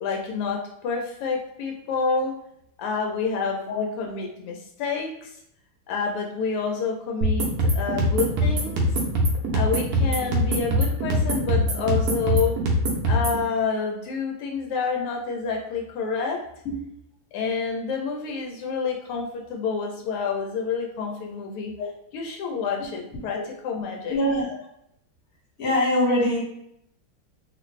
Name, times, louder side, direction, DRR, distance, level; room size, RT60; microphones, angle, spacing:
voice 1, 0.0-2.4 2.8-5.3 5.9-8.9 9.5-12.6 13.1-16.4 17.3-21.7 22.1-24.2, left 5 dB, 85° left, 1 dB, 1.5 m, -28 dB
sound 1, 7.2-13.4, equal, 70° right, 0.9 m, -23 dB
voice 2, 24.1-24.6 25.6-26.4, left 1 dB, 45° left, -5 dB, 1.6 m, -23 dB
3.4 x 2.5 x 3.1 m, 0.74 s
omnidirectional pair, 2.4 m